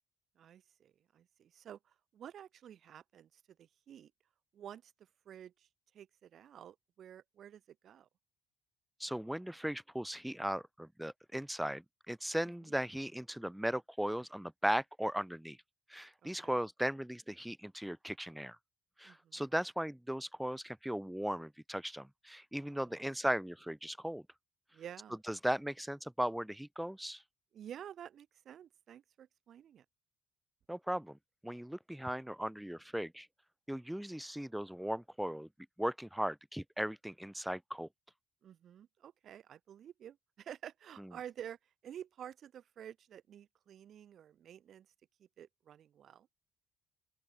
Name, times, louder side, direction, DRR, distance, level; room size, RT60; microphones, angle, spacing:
voice 1, 0.4-4.1 4.5-4.9 5.3-5.7 5.9-8.1 12.6-12.7 16.2-16.6 19.0-19.4 22.6-23.1 24.7-25.2 27.5-29.8 38.4-41.6 41.8-44.9 45.2-46.3, right 9 dB, 60° right, 4.1 m, -51 dB
voice 2, 9.0-15.6 15.9-18.6 19.0-24.2 25.3-27.2 30.7-31.2 31.4-33.3 33.7-35.5 35.8-37.9 41.0-41.1, equal, 5° right, 2.1 m, -37 dB
open air
hypercardioid pair, 55°, 0 cm